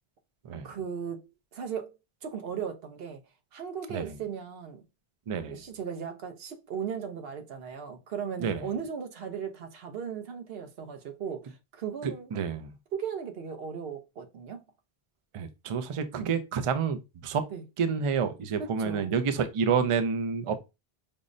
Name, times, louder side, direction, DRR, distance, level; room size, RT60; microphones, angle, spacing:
voice 1, 0.6-1.9 2.2-3.2 3.5-4.8 5.5-12.3 12.9-14.6 16.2-16.4 17.5-17.6 18.6-19.1, right 7 dB, 70° right, 0.9 m, -37 dB
voice 2, 5.3-5.6 8.4-8.7 12.0-12.7 15.3-17.4 17.8-20.7, right 6 dB, 55° right, 0.3 m, -29 dB
5.2 x 2.1 x 2.5 m
omnidirectional pair, 1.0 m